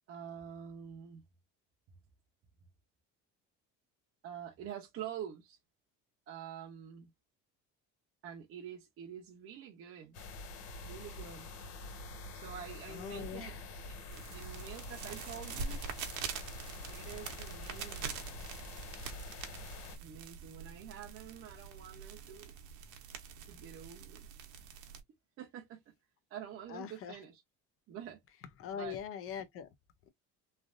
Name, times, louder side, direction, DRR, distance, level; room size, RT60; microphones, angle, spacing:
voice 1, 0.1-1.2 1.9-2.0 4.2-5.6 6.3-7.1 8.2-10.2 10.8-11.5 12.3-13.6 14.1-15.8 16.9-18.5 20.0-22.6 23.5-24.3 25.4-25.8 26.3-27.4 27.9-28.2 28.7-29.0, right 9 dB, 45° right, 0.8 m, -47 dB
sound 1, 10.1-20.0, left 2 dB, 90° left, 1.8 m, -46 dB
voice 2, 12.9-13.6 26.7-27.2 28.6-29.7, left 8 dB, 45° left, 0.6 m, -42 dB
sound 2, 14.1-25.0, right 6 dB, 75° right, 1.0 m, -45 dB
3.3 x 2.5 x 2.4 m
cardioid pair, 160°, 30 cm